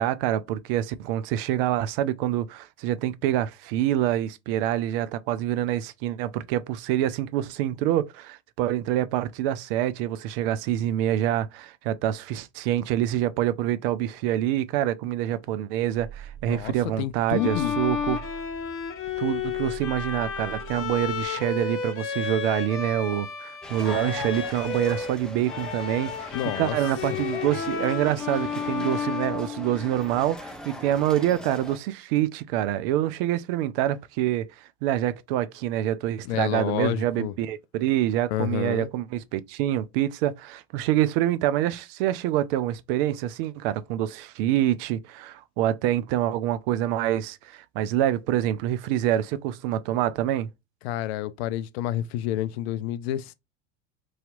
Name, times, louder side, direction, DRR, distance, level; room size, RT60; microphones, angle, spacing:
voice 1, 0.0-18.2 19.2-50.5, right 12 dB, 55° right, 0.4 m, -26 dB
sound 1, 15.9-21.3, right 9 dB, 30° right, 1.0 m, -44 dB
voice 2, 16.5-17.8 26.3-26.8 36.2-37.3 38.3-38.9 50.8-53.3, left 13 dB, 60° left, 0.5 m, -29 dB
Bowed string instrument, 17.3-25.2 25.4-30.2, left 6 dB, 35° left, 0.9 m, -32 dB
sound 2, 23.6-31.8, left 1 dB, ahead, 0.6 m, -41 dB
3.1 x 2.8 x 2.4 m
hypercardioid pair, 85°, 36 cm